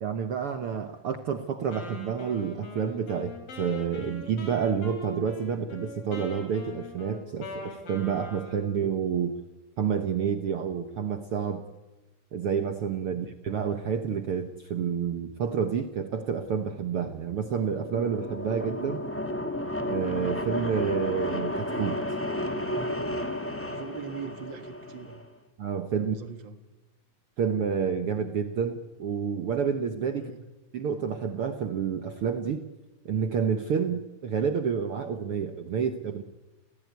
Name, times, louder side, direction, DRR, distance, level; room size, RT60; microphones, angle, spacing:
voice 1, 0.0-9.3 9.8-11.6 12.3-19.0 19.8-22.0 25.6-26.2 27.4-30.3 30.7-32.7 33.0-36.2, right 7 dB, 65° right, 8 dB, 1.4 m, -29 dB
Wind instrument woodwind instrument, 1.7-8.8, left 2 dB, 85° left, 5.6 m, -42 dB
sound 1, 17.3-25.2, left 1 dB, 5° left, 1.1 m, -32 dB
voice 2, 23.7-25.3 26.0-26.6 30.1-30.4, right 5 dB, 45° right, 9 dB, 1.7 m, -42 dB
30.0 x 15.5 x 9.4 m, 1.1 s
omnidirectional pair, 3.9 m